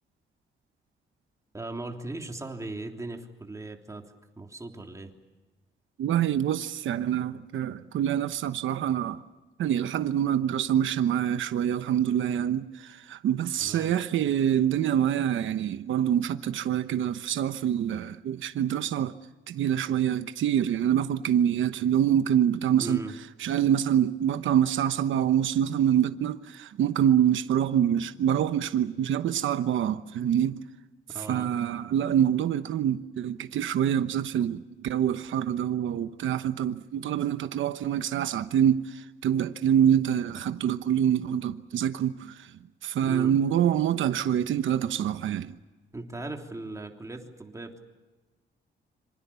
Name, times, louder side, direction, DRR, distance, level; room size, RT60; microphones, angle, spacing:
voice 1, 1.5-4.0 4.4-5.1 13.6-13.9 22.8-23.1 31.1-31.5 43.0-43.3 45.9-47.8, right 2 dB, 15° right, 3.3 m, -38 dB
voice 2, 6.0-9.2 9.6-19.1 19.5-23.0 23.4-30.6 31.2-42.5 42.8-45.6, right 10 dB, 85° right, 1.1 m, -26 dB
26.5 x 26.0 x 7.0 m
cardioid pair, 125°, 20 cm